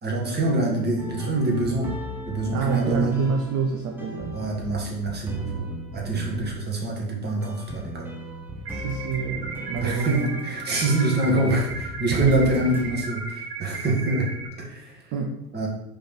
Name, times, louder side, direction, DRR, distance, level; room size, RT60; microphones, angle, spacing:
voice 1, 0.0-1.9 2.2-3.2 4.3-5.7 5.9-8.1 9.8-15.1 15.5-15.7, right 2 dB, 20° right, -2 dB, 1.8 m, -25 dB
sound 1, 1.0-12.9, right 1 dB, 5° right, 0.7 m, -36 dB
voice 2, 2.5-4.4 6.3-6.5 8.7-10.3 12.2-12.6 15.1-15.4, right 5 dB, 35° right, 2 dB, 0.9 m, -26 dB
sound 2, 8.7-14.5, right 4 dB, 80° right, 1.2 m, -35 dB
5.3 x 3.4 x 5.3 m, 0.85 s
hypercardioid pair, 95°, 47 cm